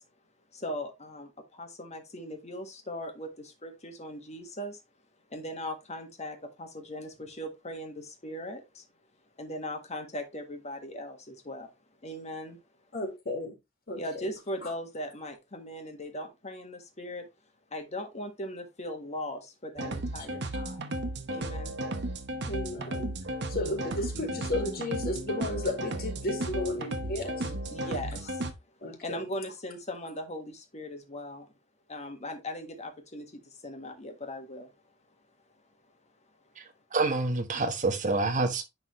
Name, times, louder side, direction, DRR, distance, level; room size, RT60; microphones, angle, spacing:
voice 1, 0.5-4.8 5.3-8.8 9.4-11.7 12.0-12.6 13.9-17.3 17.7-20.9 21.3-21.8 23.6-23.7 24.1-24.4 27.4-28.5 29.0-31.5 31.9-34.7, left 1 dB, 35° left, 1.6 m, -39 dB
voice 2, 12.9-13.5 13.9-14.3 14.6-14.7 22.5-23.1 23.5-27.5 28.8-29.3, left 2 dB, 50° left, 2.2 m, -34 dB
sound 1, 19.8-28.5, right 1 dB, 60° right, 1.0 m, -34 dB
voice 3, 36.6-38.6, right 3 dB, 40° right, 1.3 m, -28 dB
10.5 x 3.9 x 3.1 m
head